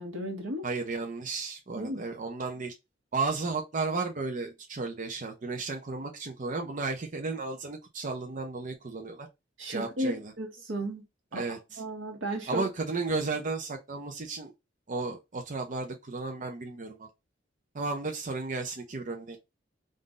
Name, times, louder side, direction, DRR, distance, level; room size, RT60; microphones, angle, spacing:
voice 1, 0.0-0.6 1.8-2.1 9.6-11.0 11.3-11.4 11.8-12.7, right 1 dB, 85° right, 1.4 m, -34 dB
voice 2, 0.6-2.7 3.1-9.3 9.7-10.3 11.3-11.8 12.5-14.5 14.9-17.1 17.7-19.4, right 3 dB, 40° right, 0.7 m, -34 dB
3.8 x 2.6 x 3.6 m
head